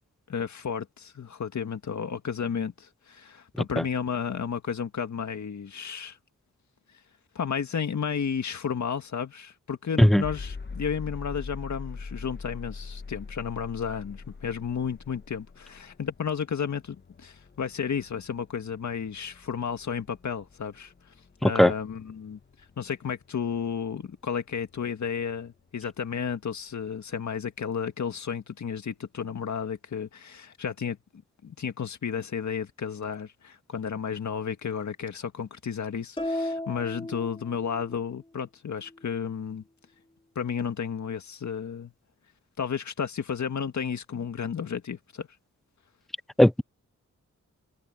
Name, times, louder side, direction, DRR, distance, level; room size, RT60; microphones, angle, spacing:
voice 1, 0.3-6.2 7.4-20.9 21.4-22.4 22.8-31.0 31.4-39.6 40.4-41.9 42.6-45.3, left 7 dB, 70° left, 1.9 m, -32 dB
sound 1, 10.2-26.2, left 4 dB, 35° left, 1.2 m, -44 dB
voice 2, 21.4-21.7 46.4-46.6, left 1 dB, ahead, 0.3 m, -17 dB
sound 2, 36.2-38.0, left 1 dB, 15° left, 2.6 m, -34 dB
wide cardioid pair, 105°, 30 cm